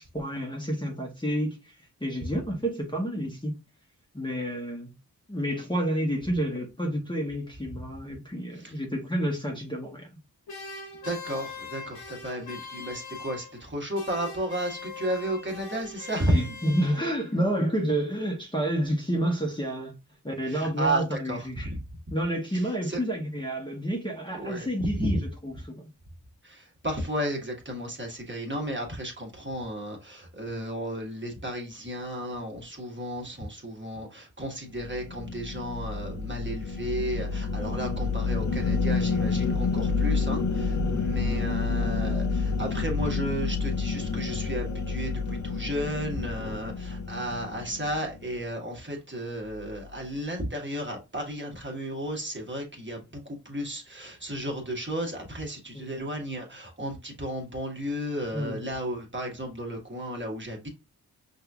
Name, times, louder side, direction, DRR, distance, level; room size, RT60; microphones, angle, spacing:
voice 1, 0.0-3.6 4.1-4.9 5.3-10.1 16.3-19.9 20.2-21.7 22.1-25.9 40.9-41.2 46.4-46.6 55.7-55.9 58.3-58.7, equal, 10° left, 1.2 m, -30 dB
sound 1, 10.5-13.7 13.9-17.3, left 4 dB, 75° left, 0.9 m, -41 dB
voice 2, 11.0-16.4 20.4-21.8 22.5-23.1 24.3-24.7 25.0-25.1 26.4-60.7, right 1 dB, 30° right, 1.6 m, -33 dB
sound 2, 34.7-48.3, left 4 dB, 50° left, 0.6 m, -29 dB
5.5 x 2.7 x 2.4 m
cardioid pair, 55°, 37 cm